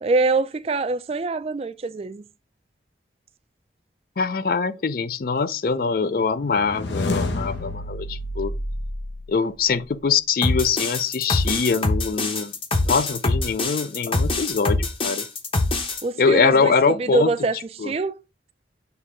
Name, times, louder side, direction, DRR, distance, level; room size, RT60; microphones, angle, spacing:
voice 1, 0.0-2.2 16.0-18.2, right 3 dB, 35° right, 0.3 m, -24 dB
voice 2, 4.2-8.5 9.3-12.5 12.8-15.2 16.2-17.3 17.8-17.9, left 5 dB, 50° left, 0.4 m, -23 dB
sound 1, 6.5-9.7, left 2 dB, 85° left, 0.9 m, -29 dB
sound 2, 10.4-16.0, left 2 dB, 30° left, 0.8 m, -24 dB
6.9 x 3.2 x 4.9 m
head